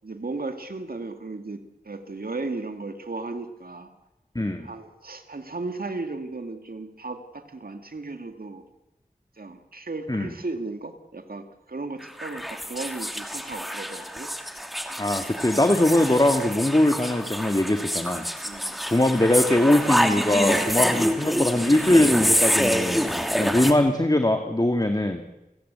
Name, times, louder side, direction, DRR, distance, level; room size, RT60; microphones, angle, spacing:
voice 1, 0.0-3.9 4.6-8.6 9.4-14.3 18.4-18.8, right 3 dB, 85° right, 7 dB, 2.2 m, -35 dB
voice 2, 4.4-4.7 10.1-10.3 15.0-18.3 18.9-23.0 23.4-25.2, left 1 dB, 25° left, 5 dB, 2.1 m, -21 dB
sound 1, 12.0-23.7, equal, ahead, 2.8 m, -26 dB
28.5 x 16.5 x 8.2 m, 0.96 s
wide cardioid pair, 45°, 15 cm